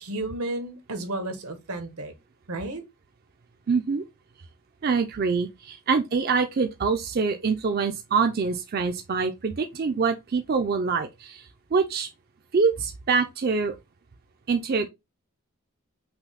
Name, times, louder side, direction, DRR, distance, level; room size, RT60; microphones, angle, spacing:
voice 1, 0.0-2.1 2.5-2.8, right 2 dB, 85° right, 1.1 m, -32 dB
voice 2, 3.7-4.0 4.8-12.1 12.5-13.7 14.5-14.9, right 5 dB, 45° right, 0.4 m, -25 dB
5.6 x 2.1 x 4.0 m
head